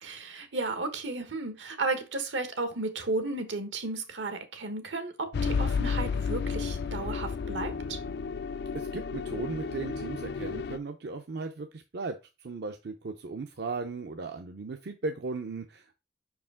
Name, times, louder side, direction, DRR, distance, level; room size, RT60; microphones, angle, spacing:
voice 1, 0.0-8.0, right 3 dB, 85° right, 1.2 m, -34 dB
sound 1, 5.3-10.8, left 5 dB, 60° left, 0.4 m, -32 dB
voice 2, 8.7-16.0, right 3 dB, 65° right, 0.6 m, -37 dB
5.6 x 4.8 x 3.6 m
head